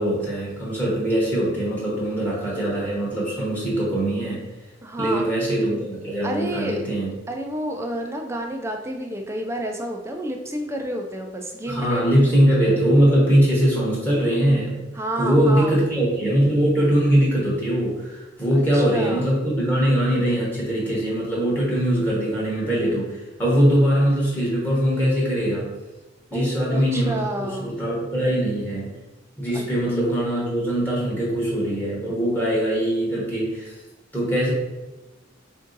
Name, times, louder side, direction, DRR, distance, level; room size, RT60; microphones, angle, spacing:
voice 1, 0.0-4.4 5.0-7.1 11.7-14.8 15.2-25.7 26.3-27.2 27.6-28.9 29.4-33.8 34.1-34.5, right 1 dB, 10° left, -6 dB, 0.9 m, -21 dB
voice 2, 4.8-5.3 6.2-6.8 7.3-12.1 14.9-15.8 18.7-19.3 26.3-27.7 29.5-29.7, right 1 dB, 15° right, 3 dB, 0.3 m, -30 dB
3.6 x 2.6 x 3.8 m, 1.1 s
head